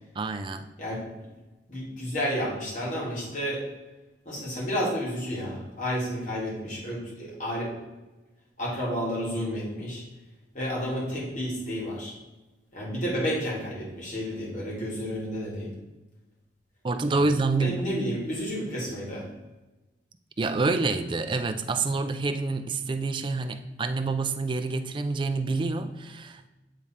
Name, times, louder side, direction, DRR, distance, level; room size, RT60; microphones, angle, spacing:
voice 1, 0.2-0.7 16.8-17.9 20.4-26.5, right 3 dB, 30° right, 0.4 m, -27 dB
voice 2, 0.8-1.3 1.7-3.6 4.3-7.7 8.6-10.0 10.5-12.1 12.7-15.7 17.1-17.2 17.6-19.2, equal, 45° left, 2.3 m, -31 dB
8.3 x 3.6 x 4.3 m
head